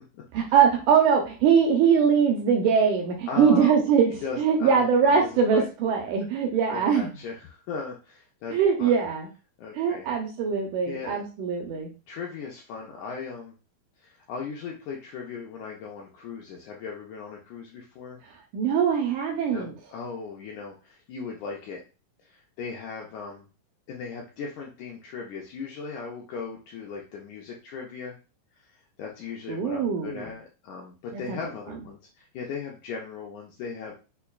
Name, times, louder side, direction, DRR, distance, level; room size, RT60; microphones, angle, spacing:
voice 1, 0.3-4.1 4.4-7.1 8.5-9.3 9.7-11.9 18.5-19.7 29.5-30.3 31.1-31.4, right 6 dB, 80° right, 2 dB, 1.8 m, -22 dB
voice 2, 3.3-3.8 4.2-5.7 6.7-8.5 8.8-8.9 9.6-10.1 10.9-11.2 12.1-13.6 14.0-18.2 19.5-21.8 22.2-23.5 23.9-28.2 28.6-28.7 29.0-33.9, left 5 dB, 80° left, -1 dB, 1.7 m, -37 dB
5.5 x 2.2 x 2.2 m, 0.32 s
omnidirectional pair, 4.1 m